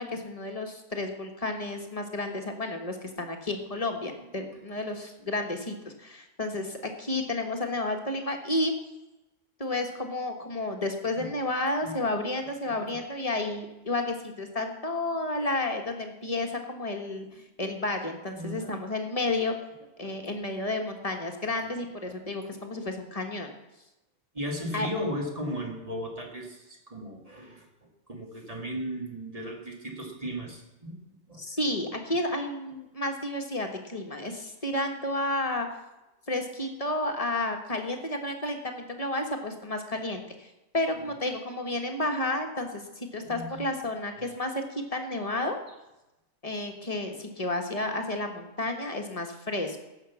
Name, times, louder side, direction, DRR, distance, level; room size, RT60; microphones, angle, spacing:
voice 1, 0.0-8.7 9.6-17.3 17.6-19.5 20.0-23.5 24.7-24.9 31.4-35.7 36.3-45.6 46.4-49.8, left 2 dB, 30° left, 4 dB, 1.5 m, -31 dB
voice 2, 12.7-13.0 13.4-13.5 17.3-17.4 18.4-18.8 20.0-20.3 22.5-22.6 24.3-31.0 31.3-31.4 41.1-41.2 43.2-43.6, equal, 30° right, 0 dB, 2.3 m, -36 dB
15.5 x 6.1 x 7.1 m, 0.97 s
omnidirectional pair, 1.3 m